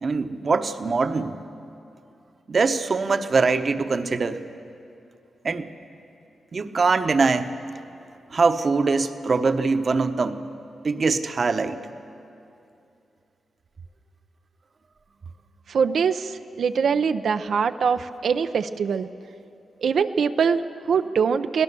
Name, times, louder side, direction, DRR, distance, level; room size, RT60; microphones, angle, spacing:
voice 1, 0.0-1.3 2.5-4.4 5.4-5.7 6.5-7.5 8.3-10.4 10.8-11.8, right 4 dB, 50° right, 9 dB, 1.0 m, -22 dB
voice 2, 15.7-19.1 19.8-21.6, right 6 dB, 75° right, 8 dB, 0.5 m, -23 dB
25.0 x 17.0 x 6.8 m, 2.6 s
cardioid pair, 80°, 0 cm